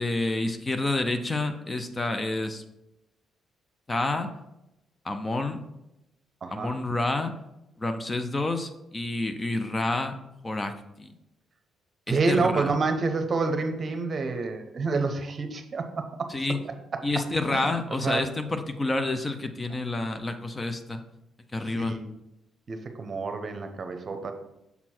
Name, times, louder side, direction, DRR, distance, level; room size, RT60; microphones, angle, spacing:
voice 1, 0.0-2.6 3.9-4.3 5.0-5.7 6.5-7.3 7.8-10.1 10.4-11.1 12.1-12.7 16.3-16.6 17.0-21.0 21.5-22.0, left 2 dB, 25° left, 8 dB, 0.6 m, -29 dB
voice 2, 6.4-6.7 12.1-16.3 17.5-17.6 18.0-18.3 21.7-22.1 22.7-24.3, right 4 dB, 40° right, 6 dB, 0.8 m, -28 dB
7.0 x 4.4 x 4.4 m, 0.89 s
cardioid pair, 90°, 0 cm